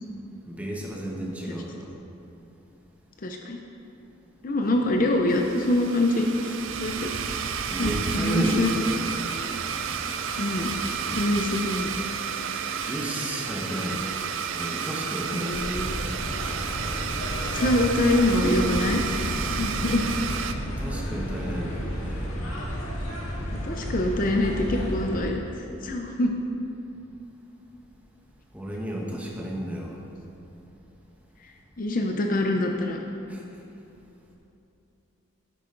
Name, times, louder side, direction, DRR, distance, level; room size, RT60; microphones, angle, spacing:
voice 1, 0.4-2.0 4.7-4.9 7.7-8.9 12.8-14.1 14.5-15.7 20.6-22.3 28.5-30.0 33.3-33.6, right 1 dB, 5° right, -2 dB, 1.2 m, -32 dB
voice 2, 3.2-3.6 4.4-7.1 7.8-8.7 10.4-10.7 11.1-11.9 13.7-14.3 15.3-16.0 17.4-20.0 23.5-26.3 31.8-33.0, left 1 dB, 40° left, 2 dB, 0.6 m, -25 dB
sound 1, 4.6-11.3, right 2 dB, 80° right, 1.1 m, -45 dB
Domestic sounds home sounds, 5.3-20.5, right 7 dB, 65° right, 0.5 m, -31 dB
sound 2, 15.5-25.2, equal, 70° left, 1.9 m, -32 dB
11.0 x 8.8 x 3.9 m, 2.8 s
head